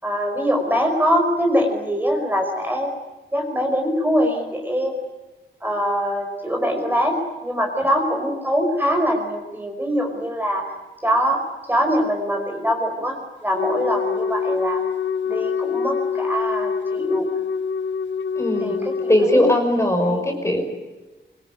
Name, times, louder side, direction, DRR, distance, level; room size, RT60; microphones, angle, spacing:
voice 1, 0.0-2.9 3.3-5.0 5.6-10.7 11.0-11.4 11.7-14.8 15.2-17.3 18.6-19.5 19.9-20.3, equal, 10° right, 2 dB, 5.2 m, -23 dB
Wind instrument woodwind instrument, 13.5-19.6, left 6 dB, 70° left, 1.1 m, -25 dB
voice 2, 18.4-18.7 19.1-20.6, left 1 dB, 15° left, 3 dB, 5.4 m, -19 dB
25.0 x 25.0 x 9.5 m, 1.1 s
wide cardioid pair, 150°, 20 cm